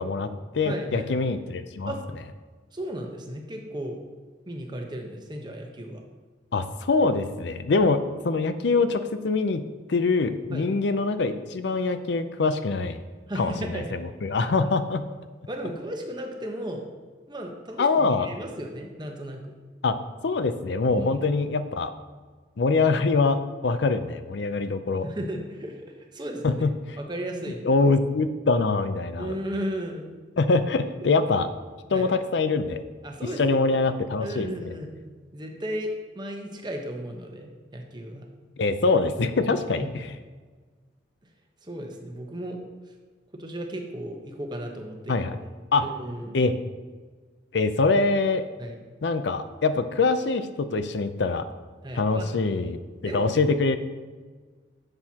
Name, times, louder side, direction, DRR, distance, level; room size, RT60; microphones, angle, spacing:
voice 1, 0.0-1.9 6.5-9.6 9.9-13.0 13.4-15.0 17.8-18.3 19.8-20.0 20.2-21.9 22.6-25.1 26.4-27.0 27.6-29.4 30.4-31.5 31.9-32.8 33.4-34.5 38.6-40.1 45.1-45.3 45.7-45.8 46.3-46.6 47.5-48.4 49.0-51.5 51.9-53.8, left 3 dB, 70° left, 11 dB, 0.5 m, -24 dB
voice 2, 0.6-1.1 1.9-2.0 2.7-4.0 4.5-6.0 7.7-7.9 10.5-10.7 13.3-14.0 15.5-16.8 17.3-19.4 20.9-21.3 25.0-25.9 26.1-26.6 27.0-27.7 29.2-30.1 31.9-32.1 33.0-33.6 34.2-34.9 35.3-38.3 39.4-40.0 41.6-42.6 43.3-45.3 45.8-46.4 48.6-48.8 51.8-52.3 53.0-53.4, right 1 dB, 25° right, 2 dB, 1.0 m, -35 dB
10.5 x 7.7 x 2.9 m, 1.4 s
head